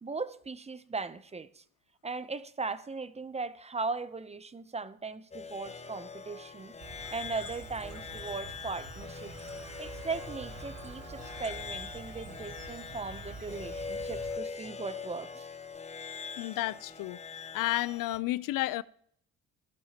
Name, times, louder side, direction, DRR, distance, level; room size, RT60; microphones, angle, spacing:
voice 1, 0.0-1.6 2.0-6.7 7.1-9.3 9.8-15.4, right 4 dB, 20° right, 0.6 m, -38 dB
sound 1, 5.3-18.2, left 5 dB, 20° left, 0.9 m, -42 dB
Chirp tweet, 6.8-14.4, right 3 dB, 55° right, 2.8 m, -47 dB
voice 2, 16.4-17.2 17.5-18.8, left 17 dB, 65° left, 0.5 m, -32 dB
17.0 x 11.5 x 2.9 m
supercardioid pair, 85°, 36 cm